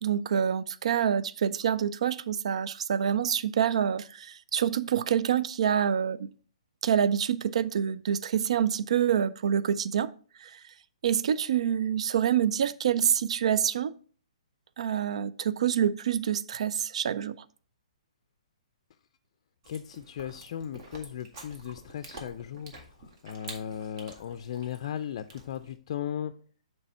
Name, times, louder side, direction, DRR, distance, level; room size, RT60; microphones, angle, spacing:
voice 1, 0.0-6.3 6.8-10.1 10.4-10.5 11.0-13.9 14.8-17.4, right 9 dB, 65° right, 0.4 m, -26 dB
Chewing mastication, 19.6-25.8, right 2 dB, 45° right, 1.7 m, -48 dB
voice 2, 19.7-22.7 23.2-26.3, left 9 dB, 50° left, 0.4 m, -36 dB
7.2 x 3.3 x 5.5 m
hypercardioid pair, 140°, 4 cm